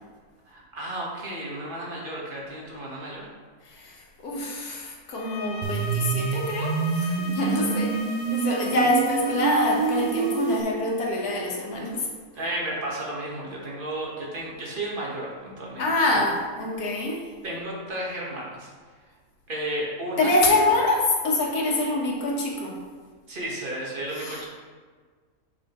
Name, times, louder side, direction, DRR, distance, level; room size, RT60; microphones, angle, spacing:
voice 1, 0.5-3.3 8.7-8.9 12.3-16.2 17.4-18.7 19.5-20.3 23.3-24.5, right 1 dB, 35° right, -4 dB, 1.4 m, -33 dB
voice 2, 3.6-8.0 8.3-12.1 15.8-17.2 20.2-22.8 24.1-24.5, left 2 dB, 80° left, -1 dB, 1.7 m, -25 dB
sound 1, 5.1-10.4, left 3 dB, 50° left, 0.8 m, -39 dB
sound 2, 5.6-10.6, right 6 dB, 85° right, 1.1 m, -27 dB
6.6 x 5.7 x 3.0 m, 1.5 s
omnidirectional pair, 1.6 m